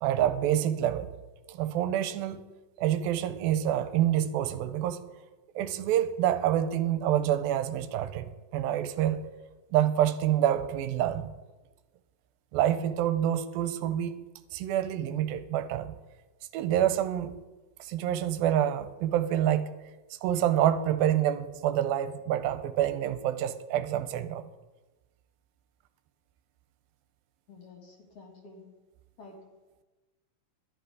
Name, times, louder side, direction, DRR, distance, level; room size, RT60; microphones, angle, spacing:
voice 1, 0.0-1.1 1.5-2.4 2.8-5.0 5.6-9.3 9.7-11.3 12.5-14.2 14.5-15.9 16.5-17.3 17.8-19.7 20.1-24.4, right 11 dB, 85° right, 11 dB, 2.4 m, -27 dB
voice 2, 27.5-28.6 29.2-29.4, left 3 dB, 50° left, 1 dB, 2.3 m, -50 dB
12.0 x 11.0 x 4.9 m, 1.2 s
omnidirectional pair, 4.2 m